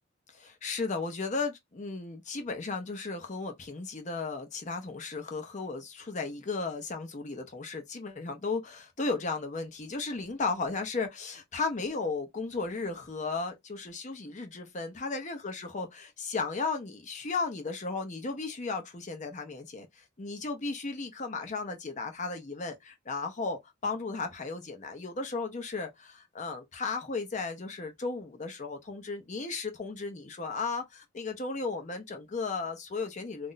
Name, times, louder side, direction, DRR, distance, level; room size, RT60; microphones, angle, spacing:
voice 1, 0.3-33.5, left 4 dB, 40° left, 0.7 m, -35 dB
2.5 x 2.1 x 3.9 m
head